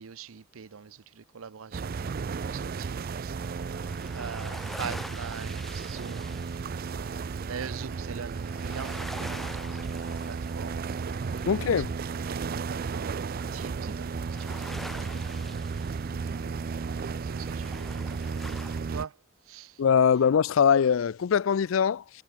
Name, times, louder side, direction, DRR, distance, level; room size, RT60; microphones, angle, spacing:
voice 1, 0.0-3.3 4.1-8.9 9.7-10.8 11.5-11.6 12.2-15.7 16.3-18.6 18.9-19.1 19.5-19.8, right 6 dB, 90° right, 0.6 m, -43 dB
sound 1, 1.7-19.1, right 5 dB, 45° right, 0.4 m, -34 dB
sound 2, 3.4-18.8, equal, ahead, 2.0 m, -46 dB
voice 2, 11.5-11.9 19.8-22.2, left 7 dB, 70° left, 0.4 m, -22 dB
head